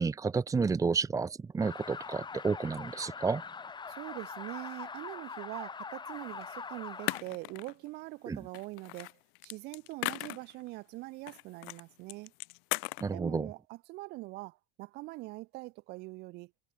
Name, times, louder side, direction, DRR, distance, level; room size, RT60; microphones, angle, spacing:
voice 1, 0.0-3.4 8.3-8.4 13.0-13.5, right 4 dB, 15° right, 0.9 m, -31 dB
sound 1, 1.6-7.2, left 5 dB, 25° left, 5.6 m, -43 dB
voice 2, 3.9-12.3 13.1-16.7, right 21 dB, 55° right, 3.3 m, -43 dB
sound 2, 6.4-6.5 7.1-7.9 8.5-10.7 11.3-11.8 12.1-13.1, left 40 dB or more, 60° left, 0.8 m, -37 dB
hypercardioid pair, 85°, 20 cm